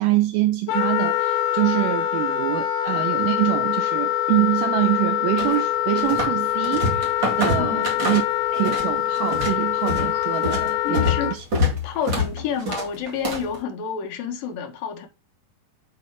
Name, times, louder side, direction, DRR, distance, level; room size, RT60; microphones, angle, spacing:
voice 1, 0.0-8.2 8.5-11.5, right 16 dB, 90° right, 1.9 m, -25 dB
Wind instrument woodwind instrument, 0.7-11.4, left 12 dB, 85° left, 3.0 m, -24 dB
sound 1, 5.4-6.4 6.6-8.9 9.2-13.6, left 1 dB, 35° right, 2.2 m, -26 dB
voice 2, 7.6-8.0 10.8-11.4 11.8-15.1, left 7 dB, 70° left, 3.0 m, -29 dB
8.8 x 3.9 x 4.8 m
omnidirectional pair, 4.4 m